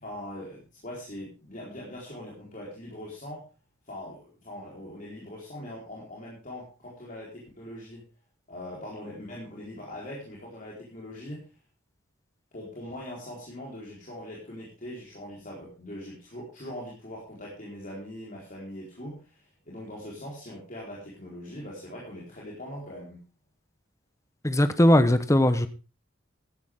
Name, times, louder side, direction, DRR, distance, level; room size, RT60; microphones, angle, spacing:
voice 1, 0.0-3.4 3.9-8.0 8.5-11.4 12.5-23.2, left 1 dB, 40° left, 4.4 m, -41 dB
voice 2, 24.4-25.7, left 1 dB, 15° left, 0.9 m, -19 dB
14.5 x 11.5 x 3.7 m
head